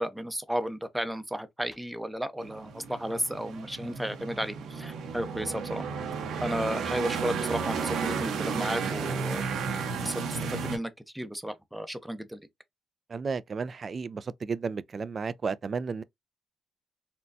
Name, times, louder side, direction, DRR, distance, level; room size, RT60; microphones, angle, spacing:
voice 1, 0.0-5.8 6.4-9.4 10.0-12.4, equal, 5° right, 0.6 m, -33 dB
sound 1, 2.4-10.8, right 5 dB, 80° right, 1.0 m, -33 dB
voice 2, 13.1-16.0, right 5 dB, 40° right, 0.3 m, -33 dB
4.2 x 2.2 x 2.6 m
cardioid pair, 90°, 0 cm